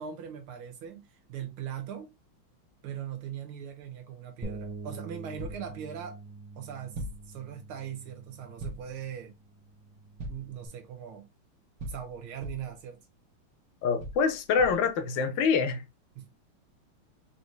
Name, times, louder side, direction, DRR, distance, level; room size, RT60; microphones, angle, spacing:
voice 1, 0.0-2.1 2.8-6.2 6.6-9.3 10.3-11.3 11.9-13.0 16.2-16.3, right 9 dB, 90° right, 1.9 m, -40 dB
Bass guitar, 4.4-10.7, right 2 dB, 10° right, 1.0 m, -45 dB
sound 1, 5.4-5.7 6.9-7.3 8.6-9.0 10.2-10.6 11.8-12.8 14.0-14.9, right 1 dB, 60° right, 1.6 m, -40 dB
voice 2, 13.8-15.8, left 6 dB, 70° left, 1.4 m, -25 dB
4.4 x 2.9 x 3.1 m
omnidirectional pair, 2.3 m